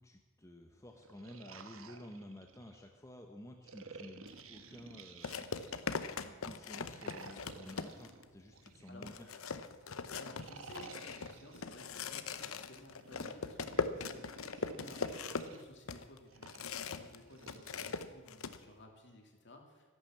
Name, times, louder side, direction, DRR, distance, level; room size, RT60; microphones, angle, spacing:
voice 1, 0.0-5.4 5.9-9.3, left 1 dB, 15° left, 3 dB, 1.0 m, -52 dB
sound 1, 0.9-2.8 3.6-6.0 6.9-9.4 10.2-11.8 12.8-15.6 16.3-18.0, right 4 dB, 70° right, 1.2 m, -53 dB
sound 2, 4.3-4.4 5.2-8.2 8.7-8.8 9.0-17.2 17.4-18.6, left 5 dB, 80° left, 0.8 m, -40 dB
voice 2, 10.2-19.9, left 1 dB, 55° left, 2 dB, 2.6 m, -57 dB
14.0 x 11.5 x 7.4 m, 1.4 s
head